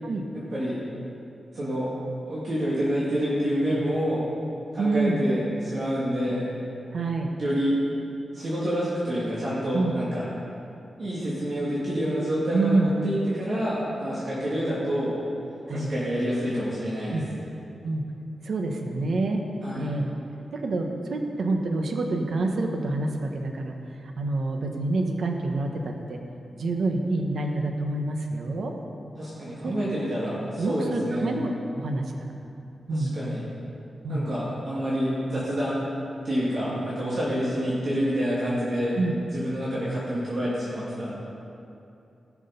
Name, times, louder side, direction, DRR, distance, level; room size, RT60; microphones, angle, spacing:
voice 1, 0.3-0.8 1.5-1.9 2.3-4.3 4.7-6.5 7.4-7.8 8.3-10.2 11.0-15.2 15.7-17.5 19.6-19.9 29.2-31.3 32.9-33.5 34.1-35.9 36.2-39.0 39.3-41.1, equal, 45° right, -9 dB, 2.3 m, -28 dB
voice 2, 4.8-5.2 6.9-7.3 9.7-9.9 12.5-12.9 15.7-15.9 17.1-17.2 17.8-18.0 18.4-19.4 19.8-20.1 20.5-23.7 24.2-26.2 26.6-28.7 29.6-29.7 30.6-32.0 32.9-33.2 34.0-34.3 39.0-39.1, right 2 dB, 60° right, 3 dB, 1.0 m, -27 dB
17.5 x 6.2 x 5.3 m, 2.7 s
wide cardioid pair, 175°, 0 cm